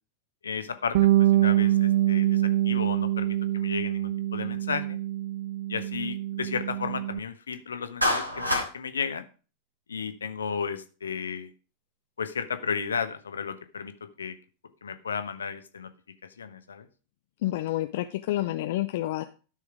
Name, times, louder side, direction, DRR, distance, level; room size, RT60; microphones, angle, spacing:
voice 1, 0.4-5.0 5.7-9.2 9.9-11.5 12.2-13.9 14.2-14.3 14.8-15.9 16.4-16.9, left 6 dB, 70° left, 10 dB, 1.2 m, -33 dB
Bass guitar, 0.9-7.2, right 14 dB, 55° right, 0.4 m, -25 dB
Clapping, 8.0-8.7, left 1 dB, 85° right, 3.5 m, -25 dB
voice 2, 17.4-19.2, left 15 dB, 55° left, 8 dB, 0.7 m, -29 dB
12.5 x 6.4 x 5.0 m, 0.36 s
figure-of-eight pair, 90°, 0 cm